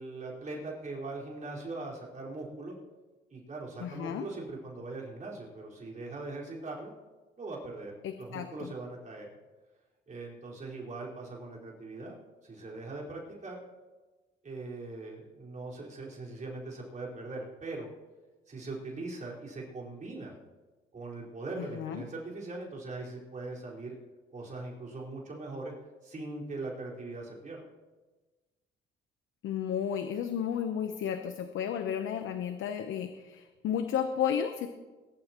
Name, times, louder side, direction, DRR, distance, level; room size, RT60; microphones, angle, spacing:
voice 1, 0.0-2.8 3.3-6.9 7.4-7.9 8.2-9.3 10.1-12.2 12.4-13.6 14.4-17.9 18.5-20.3 20.9-24.0 24.3-25.7 26.0-27.7, right 2 dB, 40° right, -4 dB, 4.8 m, -41 dB
voice 2, 3.8-4.3 8.0-8.7 21.6-22.0 29.4-34.7, left 8 dB, 80° left, 7 dB, 0.9 m, -33 dB
22.0 x 12.0 x 3.0 m, 1.2 s
cardioid pair, 90°, 20 cm